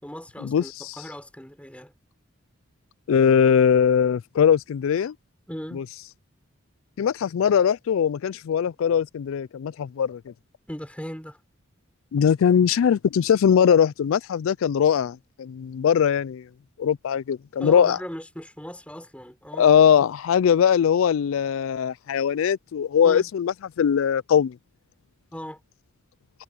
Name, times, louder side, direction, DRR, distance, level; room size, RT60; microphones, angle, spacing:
voice 1, 0.0-1.9 5.5-5.8 10.7-11.4 17.6-19.7 23.0-23.3 25.3-25.6, equal, 5° left, 5.2 m, -38 dB
voice 2, 3.1-5.1 5.7-5.8 7.0-10.3 12.1-16.4 16.8-18.0 19.6-24.6, left 8 dB, 70° left, 0.3 m, -21 dB
head